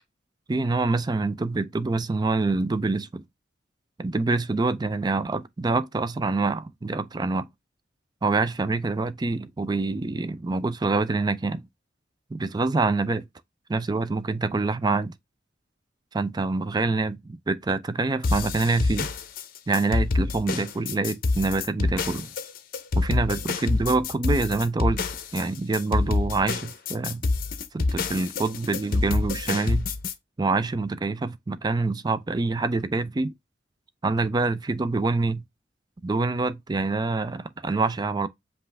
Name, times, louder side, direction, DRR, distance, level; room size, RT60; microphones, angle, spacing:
voice 1, 0.5-3.2 4.0-7.5 8.2-11.6 12.3-13.3 13.7-15.1 16.1-19.1 19.7-22.3 23.0-25.0 25.3-27.2 27.7-29.9 30.4-33.3 34.0-35.4 36.0-38.3, right 3 dB, 20° right, 0.4 m, -26 dB
sound 1, 18.2-30.1, left 3 dB, 50° left, 0.6 m, -27 dB
5.4 x 2.5 x 3.2 m
head